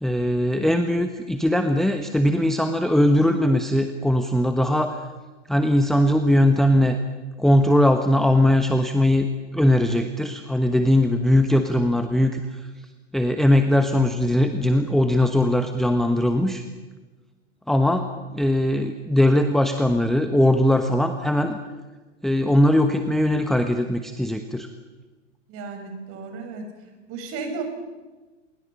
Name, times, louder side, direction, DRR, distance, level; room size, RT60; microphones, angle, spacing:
voice 1, 0.0-5.0 5.5-7.0 7.4-9.3 9.5-12.7 13.1-16.6 17.7-21.6 22.2-24.7, left 1 dB, ahead, 7 dB, 1.1 m, -20 dB
voice 2, 25.5-26.7 27.1-27.6, right 4 dB, 35° right, 4 dB, 6.6 m, -34 dB
28.5 x 22.5 x 5.7 m, 1.2 s
hypercardioid pair, 105°, 38 cm